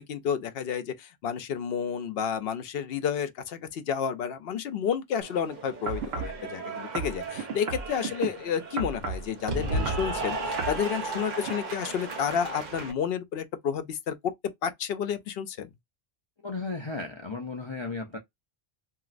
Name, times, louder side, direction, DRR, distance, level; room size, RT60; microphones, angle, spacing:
voice 1, 0.0-14.2 14.6-15.7, left 7 dB, 70° left, 0.8 m, -31 dB
Cheering / Applause, 5.2-12.9, right 2 dB, 45° right, 0.9 m, -35 dB
sound 1, 5.9-6.4 6.9-8.3 8.8-9.3 9.7-10.1 10.6-10.8 11.4-11.5, right 5 dB, 75° right, 1.0 m, -33 dB
voice 2, 16.4-18.2, left 3 dB, 40° left, 0.4 m, -34 dB
3.0 x 2.8 x 2.4 m
omnidirectional pair, 1.1 m